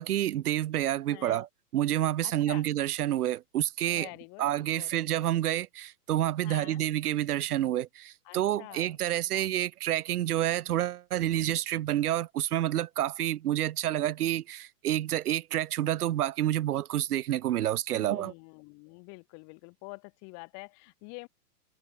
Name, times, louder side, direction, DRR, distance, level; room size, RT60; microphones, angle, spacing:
voice 1, 0.0-4.1 4.4-18.3, right 13 dB, 65° right, 1.7 m, -29 dB
voice 2, 1.1-1.4 2.2-2.6 3.9-4.5 4.8-4.9 5.2-5.3 6.4-6.8 8.2-9.0 9.3-9.5 17.9-21.3, left 38 dB, 35° left, 3.1 m, -47 dB
hypercardioid pair, 145°, 48 cm